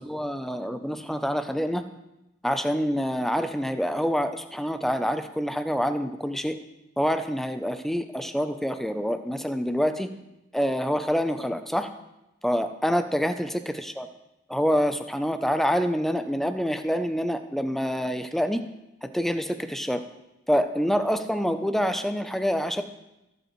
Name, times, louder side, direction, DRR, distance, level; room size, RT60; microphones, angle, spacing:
voice 1, 0.0-1.8 2.4-6.6 7.0-10.1 10.5-11.9 12.4-14.1 14.5-18.6 19.1-20.0 20.5-22.8, equal, ahead, 9 dB, 0.5 m, -26 dB
19.0 x 7.8 x 3.1 m, 0.95 s
head